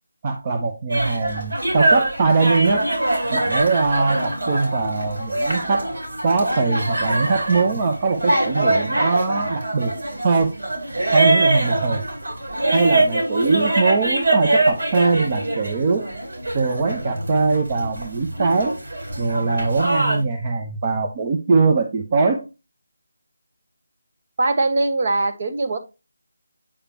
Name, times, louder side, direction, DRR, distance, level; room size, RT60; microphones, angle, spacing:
voice 1, 0.2-2.9 3.3-5.9 6.2-9.9 10.2-10.6 11.1-12.0 12.7-16.1 16.5-18.7 19.2-22.4, right 4 dB, 30° right, 4 dB, 0.9 m, -21 dB
sound 1, 0.9-20.2, right 2 dB, 65° right, 3.9 m, -23 dB
voice 2, 24.4-25.8, right 2 dB, 45° right, 8 dB, 1.4 m, -21 dB
8.6 x 5.0 x 2.9 m, 0.27 s
figure-of-eight pair, 160°, 0 cm